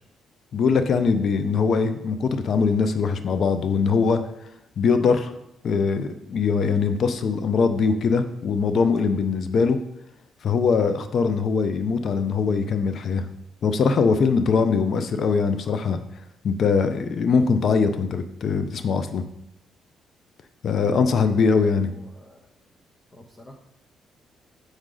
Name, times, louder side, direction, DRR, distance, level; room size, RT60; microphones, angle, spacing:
voice 1, 0.5-4.2 4.8-5.3 5.6-9.8 10.4-13.3 13.6-16.0 16.4-19.2 20.6-21.9, left 5 dB, 60° left, 10 dB, 0.5 m, -22 dB
voice 2, 21.4-22.4 23.1-23.6, left 1 dB, 30° left, 1 dB, 0.8 m, -47 dB
6.3 x 4.8 x 3.8 m, 0.80 s
cardioid pair, 90°, 0 cm